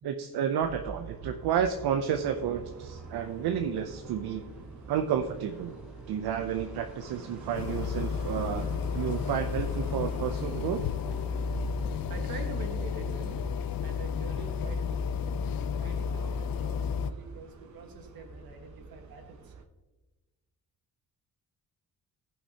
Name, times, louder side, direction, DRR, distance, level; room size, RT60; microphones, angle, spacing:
voice 1, 0.0-4.4 4.9-5.7 6.1-8.7 8.9-10.8, right 8 dB, 85° right, 6 dB, 0.6 m, -31 dB
sound 1, 0.6-19.6, right 4 dB, 50° right, 0.9 m, -45 dB
sound 2, 1.8-12.7, right 1 dB, ahead, 1.5 m, -52 dB
sound 3, 7.5-17.1, left 7 dB, 65° left, 0.5 m, -32 dB
voice 2, 12.1-13.4 13.8-15.0 15.8-19.5, right 3 dB, 70° right, 4 dB, 1.6 m, -45 dB
16.0 x 5.7 x 2.8 m, 1.2 s
cardioid pair, 125°, 37 cm